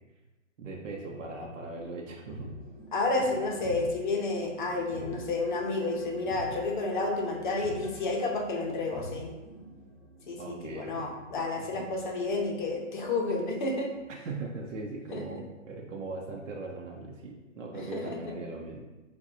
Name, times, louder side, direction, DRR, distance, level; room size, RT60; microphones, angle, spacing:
voice 1, 0.6-2.5 3.2-3.3 10.4-11.1 11.6-11.9 14.2-18.8, right 3 dB, 70° right, -1 dB, 0.7 m, -39 dB
sound 1, 2.2-14.9, right 1 dB, 20° right, 1.1 m, -47 dB
voice 2, 2.9-9.3 10.3-13.9 15.1-15.2 17.9-18.2, left 3 dB, 40° left, -1 dB, 0.7 m, -30 dB
6.2 x 2.3 x 2.7 m, 1.2 s
hypercardioid pair, 160°, 39 cm